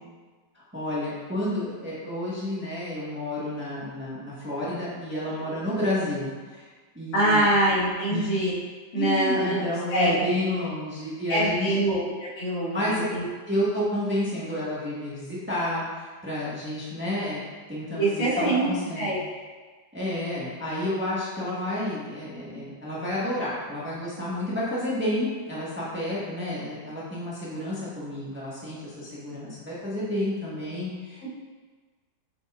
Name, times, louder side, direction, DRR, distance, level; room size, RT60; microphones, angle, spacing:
voice 1, 0.5-6.7 6.9-7.5 8.1-8.3 9.0-11.8 12.7-13.1 13.5-17.4 17.7-19.1 19.9-31.3, left 1 dB, 5° right, -8 dB, 1.2 m, -30 dB
voice 2, 7.1-8.5 8.9-9.6 9.9-10.2 11.3-13.2 18.0-18.7 19.0-19.2 31.2-31.3, right 1 dB, 85° left, -10 dB, 3.0 m, -24 dB
8.1 x 5.4 x 2.5 m, 1.4 s
omnidirectional pair, 2.1 m